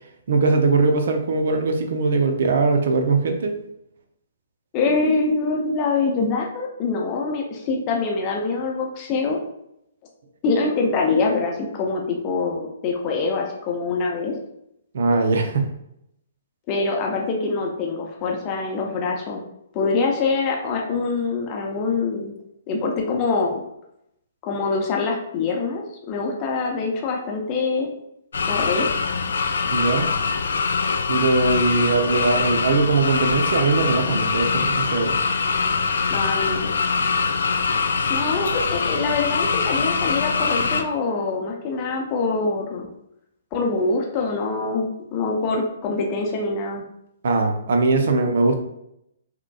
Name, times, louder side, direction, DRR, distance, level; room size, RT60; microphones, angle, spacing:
voice 1, 0.3-3.6 14.9-15.7 29.7-30.1 31.1-35.2 47.2-48.6, right 3 dB, 50° right, 5 dB, 0.6 m, -20 dB
voice 2, 4.7-9.4 10.4-14.3 16.7-19.4 19.7-22.3 22.7-23.6 24.4-27.9 28.4-28.9 36.1-36.7 38.1-42.9 43.5-46.8, left 4 dB, 30° left, 0 dB, 0.7 m, -24 dB
sound 1, 28.3-40.8, left 5 dB, 60° left, 0.4 m, -23 dB
5.8 x 3.0 x 2.4 m, 0.79 s
figure-of-eight pair, 125°, 0 cm